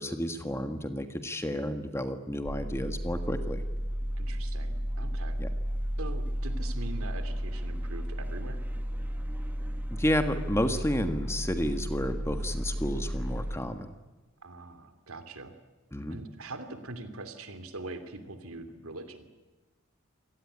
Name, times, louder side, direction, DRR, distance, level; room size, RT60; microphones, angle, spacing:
voice 1, 0.0-3.6 5.4-5.5 9.9-13.9 15.9-16.1, equal, 10° left, 8 dB, 1.4 m, -31 dB
sound 1, 2.4-13.6, equal, 10° right, 1.5 m, -33 dB
voice 2, 4.2-5.4 6.0-8.7 14.4-15.5 16.1-19.3, right 2 dB, 80° right, 9 dB, 2.8 m, -42 dB
27.0 x 18.0 x 10.0 m, 1.2 s
head